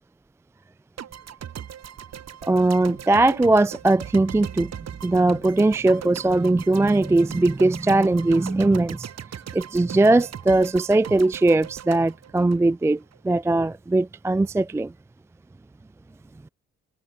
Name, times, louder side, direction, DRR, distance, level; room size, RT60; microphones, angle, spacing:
sound 1, 1.0-13.2, right 9 dB, 60° right, 3.5 m, -39 dB
voice 1, 2.4-4.7 5.0-9.1 9.5-14.9, right 2 dB, 10° right, 0.4 m, -20 dB
cardioid pair, 90°, 30 cm